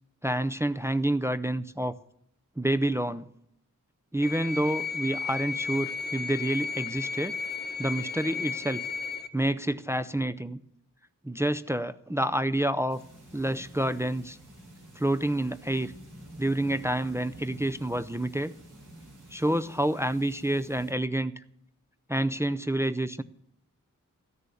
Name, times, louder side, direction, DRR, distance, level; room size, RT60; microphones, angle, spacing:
voice 1, 0.2-1.9 2.6-3.3 4.1-7.3 7.8-8.8 9.3-10.6 11.2-13.0 13.3-14.4 15.0-15.9 16.4-18.5 19.3-21.3 22.1-23.2, right 1 dB, 10° right, 12 dB, 0.5 m, -28 dB
sound 1, 4.2-9.3, left 5 dB, 30° left, 0.8 m, -34 dB
sound 2, 12.9-20.9, right 1 dB, 60° right, 5.0 m, -49 dB
13.5 x 6.8 x 8.4 m, 0.72 s
wide cardioid pair, 70°, 33 cm